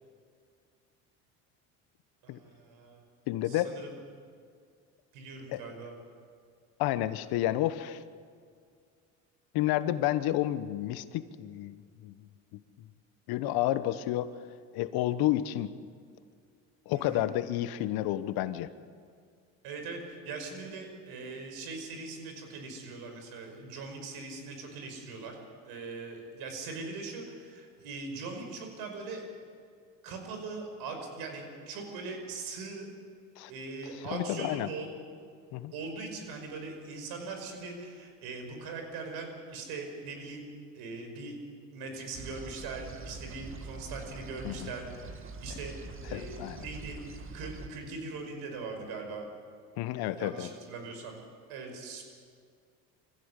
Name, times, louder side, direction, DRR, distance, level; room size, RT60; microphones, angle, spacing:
voice 1, 2.2-3.0 3.5-4.0 5.1-5.9 16.9-17.3 19.6-25.4 25.6-29.2 30.0-32.9 33.5-34.9 35.7-40.5 40.7-41.4 41.7-45.7 46.1-47.0 47.3-49.3 50.1-51.2 51.5-52.0, right 3 dB, 70° right, 4 dB, 5.3 m, -41 dB
voice 2, 3.3-3.7 5.5-5.6 6.8-8.0 9.5-12.3 13.3-14.3 14.7-15.7 16.9-18.7 33.4-33.5 34.1-34.7 35.5-35.7 44.4-44.7 46.1-46.7 49.8-50.5, left 14 dB, 70° left, 13 dB, 1.2 m, -30 dB
sound 1, 42.1-47.7, right 3 dB, 30° right, 1.7 m, -44 dB
24.5 x 16.0 x 8.3 m, 2.1 s
supercardioid pair, 75°, 39 cm